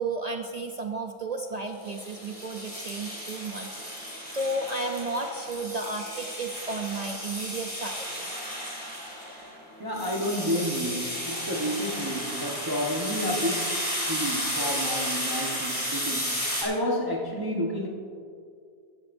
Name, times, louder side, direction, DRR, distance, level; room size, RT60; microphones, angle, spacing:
voice 1, 0.0-8.4, right 2 dB, 60° right, 3 dB, 0.4 m, -33 dB
sound 1, 1.8-16.6, equal, 5° left, 2.6 m, -33 dB
voice 2, 9.8-17.9, equal, 15° right, -2 dB, 1.1 m, -30 dB
15.0 x 13.0 x 2.7 m, 2.3 s
omnidirectional pair, 1.6 m